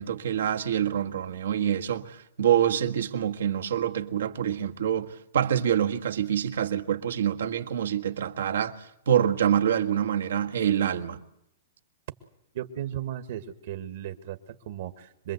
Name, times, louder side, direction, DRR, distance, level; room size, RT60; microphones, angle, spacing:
voice 1, 0.0-11.2, right 9 dB, 80° right, 1.6 m, -26 dB
voice 2, 12.5-15.3, right 11 dB, 60° right, 1.8 m, -36 dB
26.0 x 21.0 x 8.1 m
hypercardioid pair, 140°, 0 cm